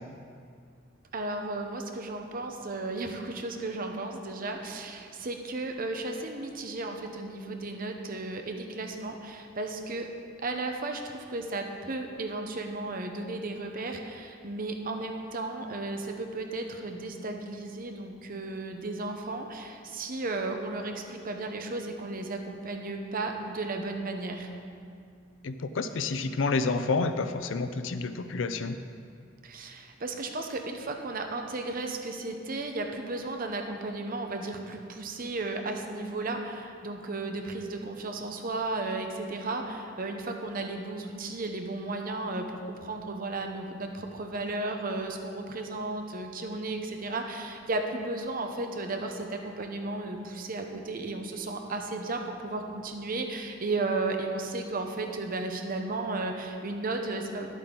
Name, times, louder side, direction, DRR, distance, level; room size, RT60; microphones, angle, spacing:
voice 1, 1.1-10.1 10.4-24.5 29.4-57.5, right 2 dB, 50° right, 4 dB, 0.8 m, -34 dB
voice 2, 25.4-28.7, left 3 dB, 85° left, 10 dB, 0.5 m, -29 dB
11.0 x 8.3 x 3.8 m, 2.3 s
head